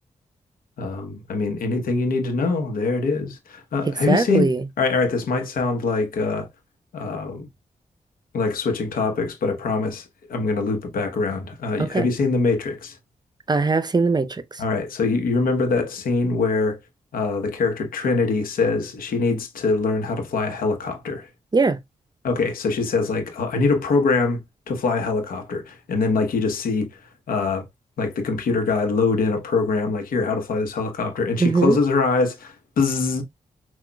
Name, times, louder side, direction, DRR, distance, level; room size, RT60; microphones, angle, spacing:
voice 1, 0.8-4.5 4.8-6.5 6.9-7.5 8.3-13.0 14.6-16.8 17.1-21.3 22.2-26.9 27.3-27.7 28.0-33.2, left 3 dB, 80° left, 1.0 m, -23 dB
voice 2, 3.8-4.7 11.8-12.1 13.5-14.6 21.5-21.8 31.4-31.8, right 3 dB, 30° right, 0.6 m, -21 dB
5.8 x 2.3 x 2.2 m
cardioid pair, 50°, 15 cm